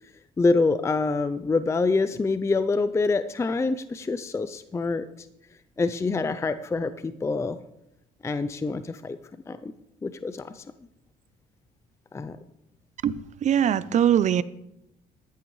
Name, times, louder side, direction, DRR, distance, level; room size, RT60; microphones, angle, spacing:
voice 1, 0.4-5.1 5.8-7.6 8.2-9.2 9.5-9.7 10.0-10.6 12.1-12.4, left 3 dB, 15° left, 0.4 m, -26 dB
voice 2, 13.0-14.4, right 9 dB, 45° right, 0.5 m, -22 dB
14.0 x 12.0 x 3.2 m
cardioid pair, 110°, 17 cm